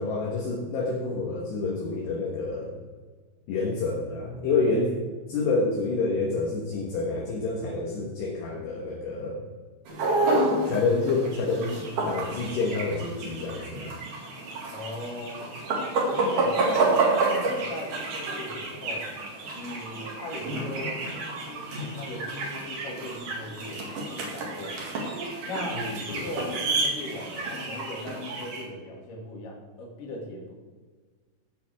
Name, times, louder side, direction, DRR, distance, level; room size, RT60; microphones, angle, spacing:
voice 1, 0.0-2.7 3.5-5.0 5.3-9.4 10.7-11.7 12.0-13.9 25.7-26.2, left 3 dB, 65° left, -1 dB, 3.1 m, -28 dB
sound 1, 9.9-28.6, right 2 dB, 50° right, 3.0 m, -29 dB
voice 2, 14.7-15.4 16.1-19.1 19.5-25.0 25.4-30.5, left 1 dB, 50° left, -2 dB, 3.4 m, -38 dB
16.0 x 8.6 x 3.5 m, 1.4 s
omnidirectional pair, 5.7 m